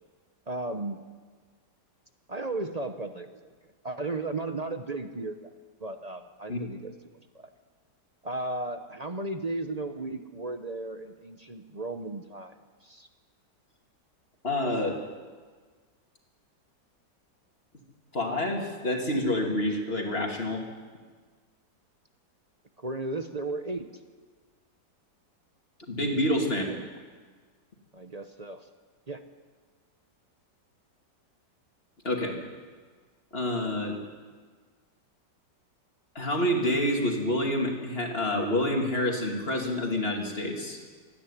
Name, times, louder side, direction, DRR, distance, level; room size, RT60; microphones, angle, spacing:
voice 1, 0.5-1.0 2.3-3.5 3.8-5.5 5.8-6.9 7.3-7.5 8.2-12.5 12.8-13.1 22.8-23.9 26.5-26.9 27.9-28.7 29.1-29.2, right 2 dB, 35° right, 7 dB, 0.7 m, -35 dB
voice 2, 14.4-15.0 18.1-20.6 25.9-26.6 32.0-32.3 33.3-34.0 36.1-40.8, left 1 dB, 35° left, 1 dB, 2.7 m, -28 dB
26.0 x 10.0 x 9.9 m, 1.5 s
omnidirectional pair, 1.9 m